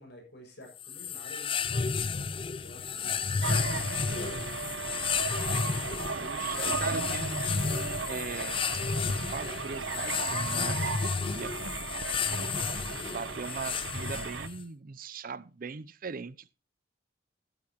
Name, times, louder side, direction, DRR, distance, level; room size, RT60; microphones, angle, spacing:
voice 1, 0.0-4.6, left 1 dB, 65° left, 3 dB, 6.6 m, -50 dB
sound 1, 0.8-14.6, left 5 dB, 30° left, 0.5 m, -32 dB
sound 2, 3.4-14.5, right 5 dB, 80° right, 0.9 m, -36 dB
voice 2, 6.1-7.4 7.7-8.6 9.1-11.7 13.1-16.6, right 5 dB, 50° right, 18 dB, 0.6 m, -40 dB
13.5 x 13.0 x 3.0 m, 0.32 s
head